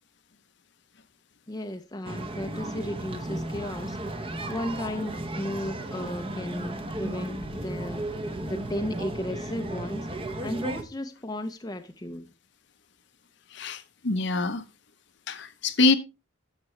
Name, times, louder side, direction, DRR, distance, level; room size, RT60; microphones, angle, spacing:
voice 1, 1.5-8.1 8.4-10.1 10.4-12.3, left 1 dB, 20° left, 0.6 m, -35 dB
sound 1, 2.0-10.8, right 1 dB, 25° right, 0.8 m, -34 dB
voice 2, 13.5-14.6 15.3-16.0, left 3 dB, 55° left, 0.8 m, -25 dB
11.0 x 7.5 x 3.2 m
head